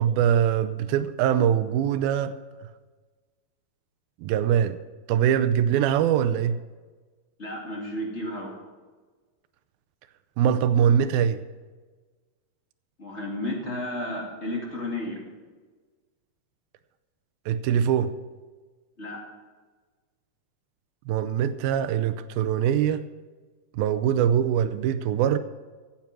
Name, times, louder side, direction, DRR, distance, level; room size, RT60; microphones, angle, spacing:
voice 1, 0.0-2.3 4.2-4.8 5.1-6.6 10.4-11.4 17.5-18.1 21.1-23.0 23.7-25.4, right 9 dB, 80° right, 12 dB, 2.2 m, -23 dB
voice 2, 7.4-8.5 13.0-15.2 19.0-19.2, left 1 dB, 20° left, -2 dB, 2.1 m, -32 dB
15.0 x 8.9 x 6.1 m, 1.4 s
omnidirectional pair, 4.7 m